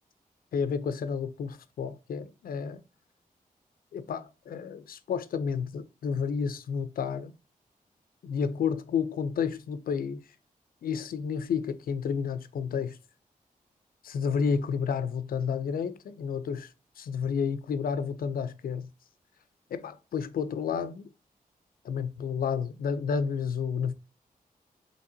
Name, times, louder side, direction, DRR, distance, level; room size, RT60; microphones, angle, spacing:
voice 1, 0.5-2.8 3.9-7.3 8.2-10.2 10.8-13.0 14.0-16.7 17.0-18.9 19.7-21.1 21.8-23.9, left 6 dB, 80° left, 0.4 m, -31 dB
5.5 x 2.9 x 2.6 m
wide cardioid pair, 130°, 15 cm